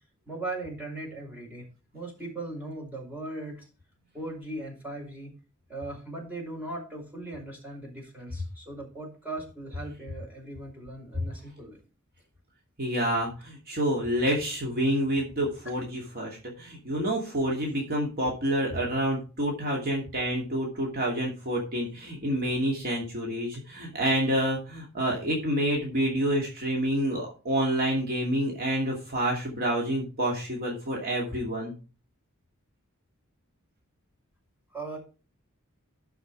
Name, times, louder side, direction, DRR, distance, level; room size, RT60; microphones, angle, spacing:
voice 1, 0.3-1.6 1.9-3.6 4.1-5.3 5.7-11.8 34.7-35.0, right 2 dB, 10° right, -2 dB, 5.1 m, -38 dB
voice 2, 12.8-31.7, right 1 dB, 45° right, -2 dB, 2.7 m, -28 dB
13.0 x 5.7 x 4.8 m, 0.35 s
head